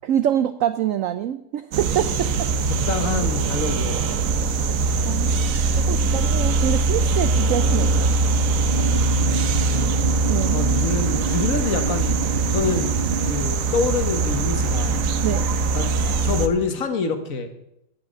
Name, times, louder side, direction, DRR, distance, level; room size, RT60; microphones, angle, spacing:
voice 1, 0.0-2.5 5.0-5.3 5.7-8.2 10.3-10.6 15.2-15.5, right 10 dB, 85° right, 13 dB, 0.7 m, -25 dB
sound 1, 1.7-16.5, right 3 dB, 60° right, 1.0 m, -22 dB
voice 2, 2.2-4.1 8.9-12.2 12.5-13.0 13.2-15.0 15.7-15.9 16.2-17.5, left 4 dB, 50° left, 8 dB, 1.4 m, -27 dB
sound 2, 8.3-13.3, right 4 dB, 30° right, 1.5 m, -30 dB
11.5 x 5.9 x 8.9 m, 0.81 s
omnidirectional pair, 2.0 m